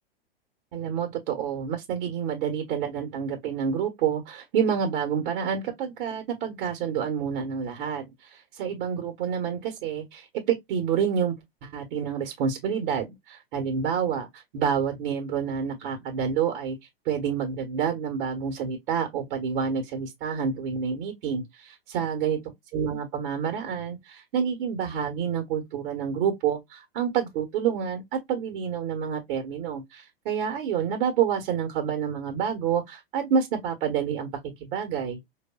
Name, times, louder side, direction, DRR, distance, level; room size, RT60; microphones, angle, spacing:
voice 1, 0.7-11.3 11.6-16.8 17.0-22.4 22.7-35.2, right 7 dB, 50° right, 1.2 m, -28 dB
5.2 x 2.6 x 2.2 m
hypercardioid pair, 105°, 30 cm